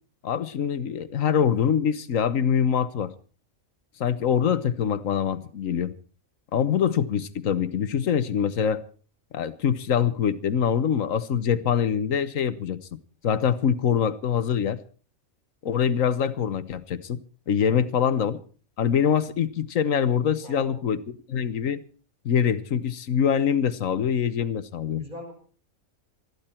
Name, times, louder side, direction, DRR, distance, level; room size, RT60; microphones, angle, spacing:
voice 1, 0.2-3.1 4.0-5.9 6.5-8.8 9.3-13.0 13.2-14.8 15.6-17.2 17.5-18.4 18.8-21.0 21.3-21.8 22.2-25.0, left 8 dB, 65° left, 14 dB, 1.4 m, -24 dB
voice 2, 17.7-18.1 20.4-20.8 25.0-25.3, equal, 35° right, 2 dB, 5.3 m, -42 dB
21.0 x 14.5 x 4.4 m, 0.40 s
omnidirectional pair, 1.5 m